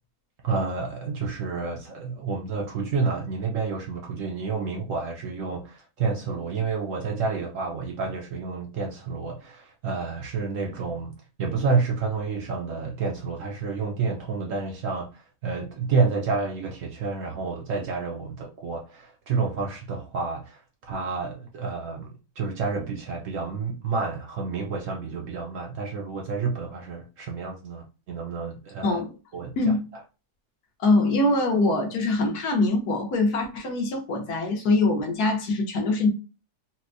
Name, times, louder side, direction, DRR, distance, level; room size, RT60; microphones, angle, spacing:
voice 1, 0.4-20.6 20.9-29.0 29.3-29.7, right 4 dB, 65° right, 0.8 m, -29 dB
voice 2, 30.8-36.1, left 2 dB, 70° left, 1.3 m, -23 dB
4.2 x 2.1 x 2.5 m
omnidirectional pair, 1.7 m